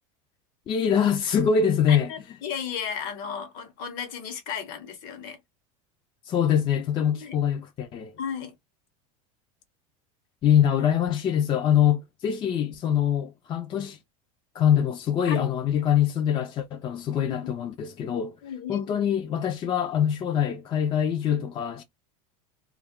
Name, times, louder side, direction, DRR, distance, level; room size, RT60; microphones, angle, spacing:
voice 1, 0.7-2.1 6.2-8.2 10.4-14.0 14.5-18.4 18.7-21.8, left 8 dB, 30° left, 0.4 m, -24 dB
voice 2, 1.9-5.4 7.1-7.3 8.2-8.5 15.3-15.4 17.3-17.4 18.4-18.9, left 7 dB, 60° left, 1.0 m, -34 dB
2.3 x 2.1 x 3.5 m
supercardioid pair, 125°, 18 cm